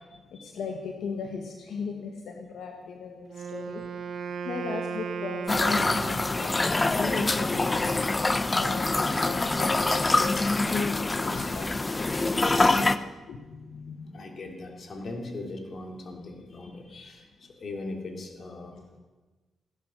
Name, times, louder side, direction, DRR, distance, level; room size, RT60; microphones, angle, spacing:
voice 1, 0.3-3.8 4.4-7.9 8.5-10.4 10.7-12.0 13.3-14.4, left 5 dB, 80° left, 2 dB, 1.5 m, -37 dB
Wind instrument woodwind instrument, 3.3-6.6, right 6 dB, 65° right, 1.4 m, -36 dB
sound 1, 5.5-13.0, left 2 dB, 25° left, 0.7 m, -25 dB
voice 2, 12.4-12.9 14.1-17.3 17.6-18.8, left 2 dB, 55° left, 3 dB, 3.1 m, -38 dB
16.5 x 11.0 x 6.5 m, 1.2 s
cardioid pair, 80°, 0 cm